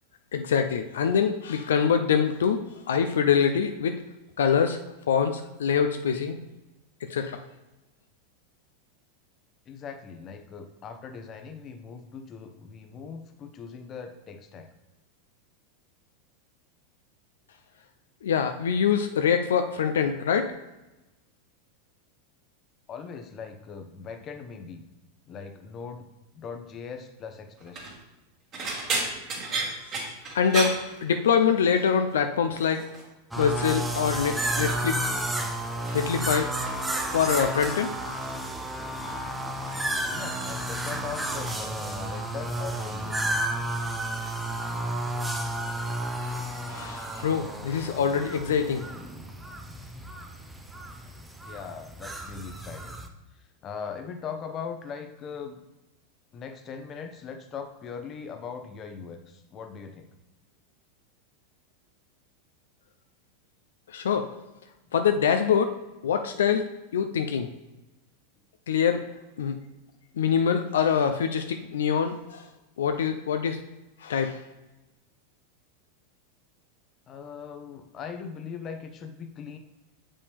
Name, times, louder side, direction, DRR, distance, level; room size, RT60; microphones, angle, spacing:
voice 1, 0.3-4.0 4.4-4.8 5.1-6.4 7.1-7.4 18.2-20.5 30.3-32.9 33.4-34.9 35.9-36.5 37.1-37.9 46.2-46.3 46.7-48.8 63.9-64.3 64.9-65.7 66.0-66.6 66.9-67.5 68.7-69.0 69.4-69.6 70.2-72.4 72.8-73.6 74.0-74.4, left 7 dB, 80° left, 7 dB, 0.5 m, -24 dB
voice 2, 9.7-14.7 22.9-24.8 25.3-27.9 39.9-43.2 50.9-51.1 51.4-53.0 53.6-55.6 56.3-60.1 77.1-79.6, left 6 dB, 35° left, 7 dB, 0.8 m, -40 dB
sound 1, 27.6-28.0 28.5-31.6 31.8-32.2 32.5-33.1 33.7-35.1 35.4-36.3 36.5-38.1 38.9-39.2 39.6-41.7 42.0-42.5 42.9-43.1 44.3-44.4, right 3 dB, 40° right, 2.2 m, -36 dB
sound 2, 33.3-53.1, right 1 dB, 10° right, 0.7 m, -32 dB
6.9 x 5.4 x 3.4 m, 1.0 s
hypercardioid pair, 100°, 0 cm